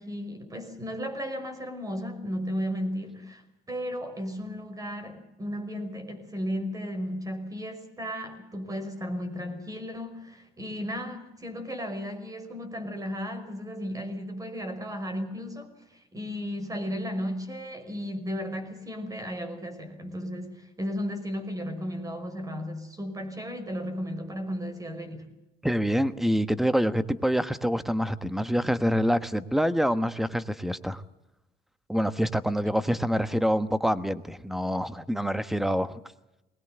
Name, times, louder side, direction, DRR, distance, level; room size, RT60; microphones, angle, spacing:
voice 1, 0.0-3.4 3.7-25.3, equal, 20° right, 8 dB, 5.4 m, -34 dB
voice 2, 25.6-31.0 31.9-36.0, equal, ahead, 12 dB, 1.2 m, -26 dB
22.0 x 19.0 x 7.9 m, 0.94 s
cardioid pair, 110°, 17 cm